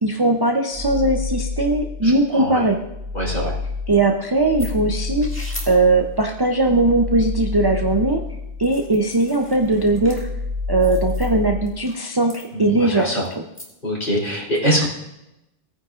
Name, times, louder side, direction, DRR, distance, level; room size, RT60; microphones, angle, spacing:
voice 1, 0.0-2.8 3.9-5.3 5.7-8.2 8.6-10.3 10.7-13.4, right 2 dB, 25° right, 2 dB, 0.6 m, -19 dB
sound 1, 0.7-2.2 2.6-9.1 9.4-11.7, left 3 dB, 55° right, 4.1 m, -29 dB
voice 2, 2.3-2.6 3.1-3.5 12.5-13.2 13.8-14.9, equal, 45° left, -5 dB, 3.3 m, -23 dB
sound 2, 4.6-4.7 5.2-5.7 8.6-10.2 10.8-11.3 11.7-12.0 12.3-13.7, equal, 10° left, 1.8 m, -39 dB
17.5 x 9.5 x 2.5 m, 0.87 s
omnidirectional pair, 1.2 m